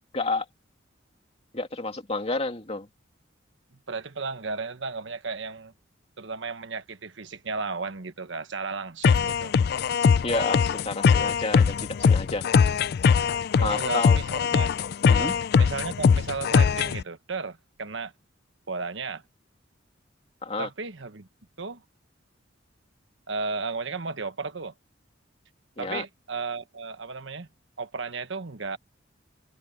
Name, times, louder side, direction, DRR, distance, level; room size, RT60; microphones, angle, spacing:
voice 1, 0.1-0.5 1.5-2.9 10.2-12.4 13.6-14.2 15.1-15.3 20.4-20.7 25.8-26.0, left 3 dB, 35° left, 2.7 m, -30 dB
voice 2, 3.9-5.7 6.2-9.5 13.6-14.7 15.0-18.1 18.7-19.2 20.6-21.3 21.6-21.8 23.3-24.7 25.8-27.5 27.8-28.8, right 4 dB, 75° right, 1.3 m, -34 dB
sound 1, 9.0-17.0, left 6 dB, 55° left, 0.4 m, -21 dB
head